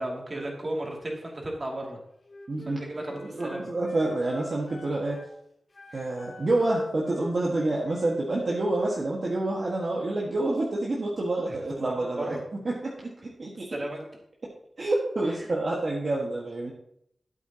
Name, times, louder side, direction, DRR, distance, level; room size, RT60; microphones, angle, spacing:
voice 1, 0.0-2.0 2.7-3.7 5.9-6.1 11.5-12.4 13.5-14.1 15.2-15.5, right 1 dB, 35° right, -1 dB, 2.5 m, -35 dB
Wind instrument woodwind instrument, 2.2-5.3 5.7-9.1, left 1 dB, 55° left, 2.6 m, -47 dB
voice 2, 2.5-2.8 3.2-5.2 5.9-12.4 12.6-13.7 14.8-16.7, right 2 dB, 50° right, -3 dB, 1.6 m, -28 dB
12.5 x 8.3 x 2.9 m, 0.73 s
wide cardioid pair, 80°, 0 cm